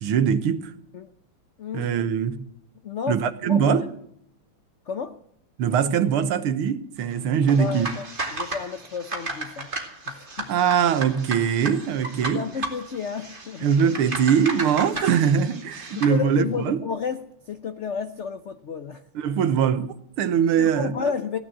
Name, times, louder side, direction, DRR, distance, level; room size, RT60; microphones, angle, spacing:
voice 1, 0.0-0.7 1.7-2.4 3.1-3.9 5.6-7.9 10.5-12.4 13.6-16.8 19.2-20.9, right 7 dB, 90° right, 1.9 m, -22 dB
voice 2, 1.6-2.0 2.8-3.2 3.5-3.8 4.9-5.2 7.6-8.0 8.3-9.7 10.1-10.5 12.3-13.7 15.9-19.0 20.6-21.4, left 6 dB, 80° left, 0.6 m, -31 dB
sound 1, 7.4-16.2, right 2 dB, 25° right, 2.6 m, -34 dB
16.5 x 11.0 x 7.5 m
omnidirectional pair, 2.3 m